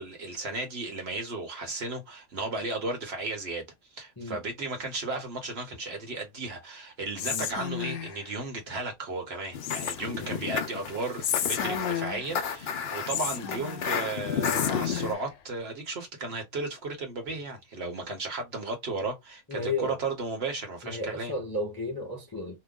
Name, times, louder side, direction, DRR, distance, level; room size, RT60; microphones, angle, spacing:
voice 1, 0.0-3.7 3.9-21.3, right 3 dB, 55° right, 1.2 m, -34 dB
Whispering, 7.2-8.3 9.6-10.3 11.2-12.4 13.1-14.0 14.4-15.3, left 9 dB, 85° left, 1.0 m, -33 dB
sound 1, 9.5-15.1, left 7 dB, 60° left, 0.8 m, -32 dB
voice 2, 19.5-20.0 20.8-22.6, left 2 dB, 25° left, 0.5 m, -33 dB
2.9 x 2.1 x 3.6 m
omnidirectional pair, 1.3 m